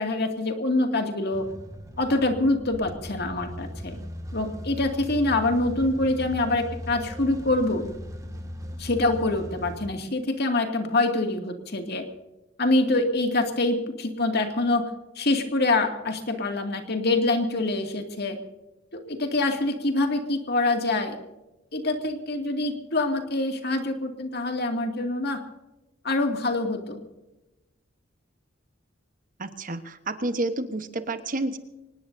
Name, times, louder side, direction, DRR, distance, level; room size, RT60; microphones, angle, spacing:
voice 1, 0.0-1.5 2.0-4.0 4.3-7.9 8.8-12.1 12.6-14.9 15.2-18.4 18.9-21.2 21.7-25.4 26.0-27.0, left 2 dB, 55° left, 5 dB, 2.3 m, -25 dB
sound 1, 1.3-9.9, equal, 15° right, 2.0 m, -38 dB
voice 2, 29.4-31.6, right 2 dB, 45° right, 9 dB, 1.2 m, -30 dB
24.5 x 19.5 x 2.7 m, 0.99 s
head